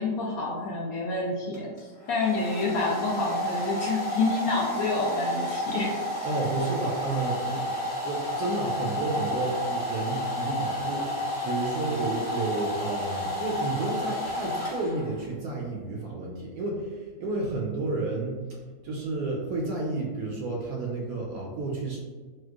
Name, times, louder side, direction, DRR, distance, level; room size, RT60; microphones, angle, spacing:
voice 1, 0.0-6.0, left 3 dB, 70° left, -3 dB, 0.9 m, -28 dB
Domestic sounds home sounds, 1.5-15.3, left 1 dB, 35° left, 0.6 m, -31 dB
voice 2, 6.2-18.6 18.8-22.0, right 3 dB, 70° right, -2 dB, 0.9 m, -31 dB
4.3 x 2.1 x 2.4 m, 1.4 s
omnidirectional pair, 1.9 m